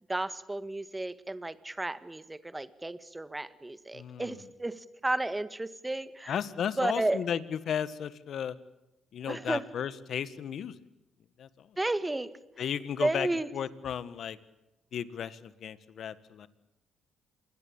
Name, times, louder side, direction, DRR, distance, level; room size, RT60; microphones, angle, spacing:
voice 1, 0.1-6.3 6.8-7.3 9.3-9.7 11.8-12.4 13.0-13.5, right 2 dB, 15° right, 14 dB, 1.7 m, -32 dB
voice 2, 3.9-4.4 6.3-8.5 9.1-10.7 11.4-11.8 12.6-13.3 13.5-14.4 14.9-16.5, left 8 dB, 65° left, 15 dB, 1.6 m, -34 dB
27.5 x 21.5 x 8.8 m, 0.93 s
cardioid pair, 90°, 0 cm